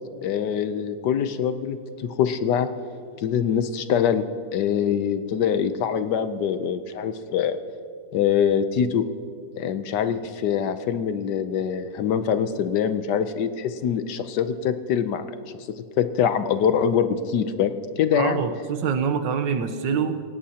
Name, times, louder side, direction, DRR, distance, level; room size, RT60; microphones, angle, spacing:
voice 1, 0.2-2.7 3.2-4.2 4.5-7.6 8.1-9.1 9.6-15.2 15.8-18.4, left 8 dB, 70° left, 10 dB, 1.3 m, -24 dB
voice 2, 18.1-20.2, right 6 dB, 80° right, 9 dB, 1.6 m, -25 dB
28.0 x 17.0 x 2.9 m, 2.3 s
omnidirectional pair, 2.0 m